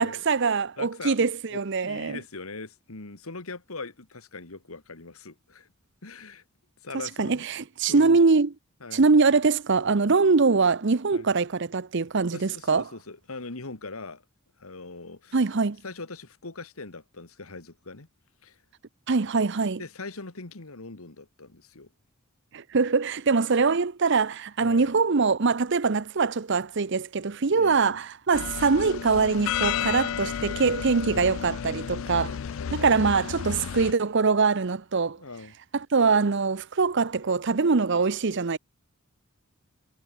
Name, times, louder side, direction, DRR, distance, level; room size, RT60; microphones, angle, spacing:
voice 1, 0.0-2.2 7.2-8.5 8.9-12.8 15.3-15.8 19.1-19.8 22.5-32.3 32.7-35.2 35.7-38.6, right 4 dB, 55° right, 0.7 m, -23 dB
voice 2, 0.8-1.2 1.5-5.7 6.0-6.4 6.8-7.5 7.9-8.2 8.8-9.0 11.1-11.3 12.3-14.2 14.6-15.4 15.8-18.1 18.4-18.6 19.8-21.9 24.6-24.9 27.5-28.0 29.7-30.0 31.1-31.5 32.1-32.8 35.2-35.5, left 3 dB, 80° left, 2.0 m, -41 dB
sound 1, 28.3-33.9, left 8 dB, 60° left, 0.4 m, -32 dB
head